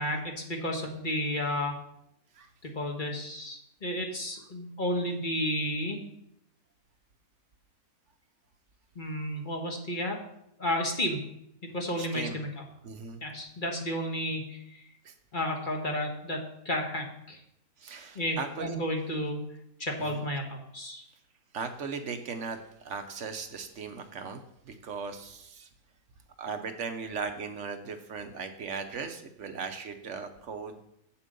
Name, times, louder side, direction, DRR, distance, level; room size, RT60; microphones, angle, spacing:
voice 1, 0.0-1.8 2.6-6.0 8.9-10.2 10.6-11.2 11.7-12.5 13.2-14.6 15.3-17.4 18.1-19.5 19.8-21.0, left 1 dB, 35° left, 2 dB, 1.5 m, -32 dB
voice 2, 12.0-12.4 12.8-13.2 15.0-15.1 17.8-18.8 20.1-20.2 21.5-24.4 24.7-25.7 26.4-30.8, right 5 dB, 55° right, 7 dB, 1.1 m, -38 dB
7.7 x 7.2 x 5.3 m, 0.76 s
omnidirectional pair, 1.6 m